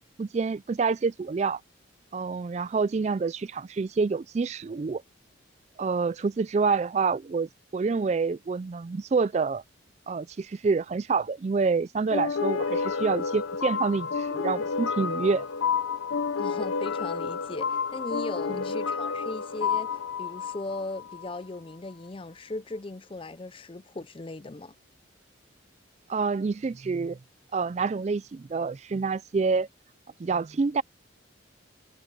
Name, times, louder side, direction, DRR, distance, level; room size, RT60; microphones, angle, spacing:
voice 1, 0.2-1.6 2.1-5.0 5.8-9.6 10.1-15.5 18.5-18.6 26.1-27.2 27.5-29.7 30.2-30.8, right 4 dB, 35° right, 0.3 m, -27 dB
sound 1, 12.1-21.4, left 5 dB, 85° left, 0.7 m, -30 dB
voice 2, 16.4-24.7, left 2 dB, 25° left, 0.5 m, -38 dB
head